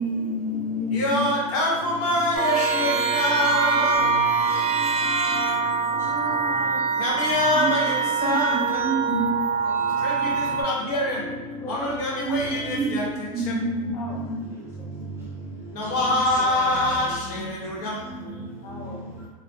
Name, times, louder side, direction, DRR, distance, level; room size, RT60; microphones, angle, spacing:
voice 1, 0.0-1.3 6.0-6.2 7.5-9.3 12.2-13.0 13.3-14.8 15.2-15.3 15.8-16.4 17.2-18.5 19.2-19.3, right 2 dB, 15° right, -5 dB, 0.4 m, -30 dB
voice 2, 1.0-3.9 7.0-8.6 10.6-11.2 11.7-13.0 15.8-17.1 17.8-17.9, left 1 dB, 80° left, -4 dB, 0.9 m, -24 dB
sound 1, 2.3-10.6, right 5 dB, 50° right, 0.7 m, -24 dB
voice 3, 3.7-4.2 5.9-7.5 9.6-10.0 11.6-13.1 13.9-14.2 14.5-14.9 15.8-17.2 18.1-19.3, left 1 dB, 40° left, -3 dB, 0.7 m, -40 dB
2.1 x 2.0 x 3.4 m, 1.1 s
supercardioid pair, 150°, 19 cm